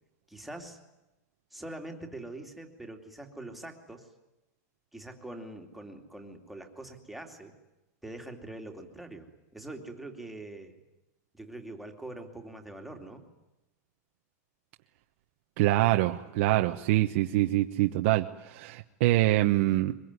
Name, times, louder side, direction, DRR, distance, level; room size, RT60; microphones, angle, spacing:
voice 1, 0.3-0.8 1.5-4.1 4.9-7.6 8.0-10.8 11.3-13.3, right 1 dB, ahead, 3 dB, 2.6 m, -43 dB
voice 2, 15.6-19.9, right 16 dB, 50° right, 4 dB, 1.1 m, -25 dB
23.5 x 22.0 x 9.7 m, 0.97 s
supercardioid pair, 160°, 9 cm